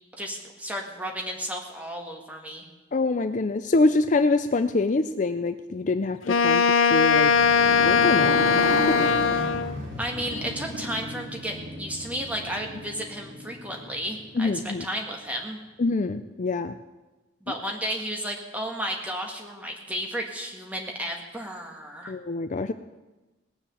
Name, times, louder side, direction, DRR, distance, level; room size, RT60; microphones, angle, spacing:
voice 1, 0.2-2.7 10.0-15.6 17.4-22.2, equal, 5° right, 1 dB, 1.8 m, -33 dB
voice 2, 2.9-7.3 7.8-8.4 8.9-9.1 14.4-14.8 15.8-16.7 22.1-22.7, left 3 dB, 40° left, 10 dB, 0.4 m, -25 dB
Wind instrument woodwind instrument, 6.3-9.8, left 5 dB, 85° left, 0.6 m, -20 dB
Motorcycle, 7.0-15.0, equal, 65° right, 3.5 m, -34 dB
19.0 x 7.2 x 7.1 m, 1.1 s
head